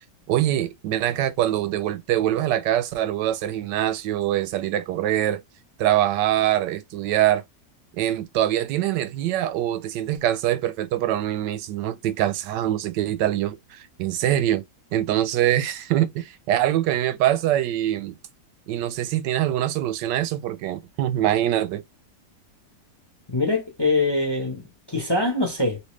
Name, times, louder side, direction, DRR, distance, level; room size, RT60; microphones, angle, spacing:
voice 1, 0.3-5.4 5.8-7.4 7.9-14.6 14.9-18.1 18.7-21.8, right 12 dB, 90° right, 1.2 m, -24 dB
voice 2, 23.3-24.6 24.9-25.8, left 2 dB, 20° left, 0.7 m, -23 dB
3.2 x 2.7 x 3.1 m
omnidirectional pair, 1.8 m